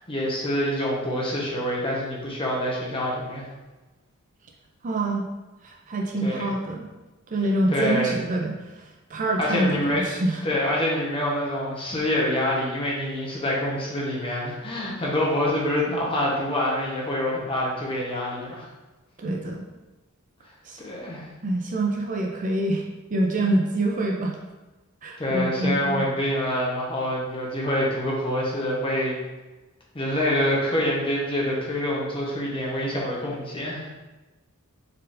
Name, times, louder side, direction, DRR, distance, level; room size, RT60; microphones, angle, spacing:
voice 1, 0.0-3.5 6.2-6.5 7.7-8.1 9.4-10.0 10.4-18.7 20.8-21.3 25.2-29.2 29.9-33.9, left 1 dB, 25° left, -4 dB, 0.9 m, -26 dB
voice 2, 4.8-5.3 5.6-6.9 7.3-10.4 19.2-19.6 20.6-20.8 21.4-22.8 23.1-24.4 25.0-26.1, right 1 dB, 40° right, 0 dB, 0.5 m, -26 dB
4.4 x 3.8 x 2.6 m, 1.1 s
head